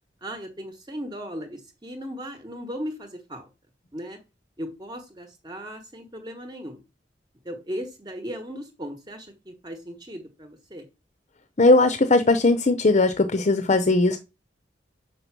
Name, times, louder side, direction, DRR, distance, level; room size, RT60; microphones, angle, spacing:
voice 1, 0.2-3.5 3.9-4.2 4.6-6.8 7.4-10.9, equal, 25° right, 6 dB, 1.1 m, -37 dB
voice 2, 11.6-14.2, left 2 dB, 40° left, 10 dB, 0.7 m, -19 dB
6.6 x 5.3 x 6.0 m, 0.28 s
head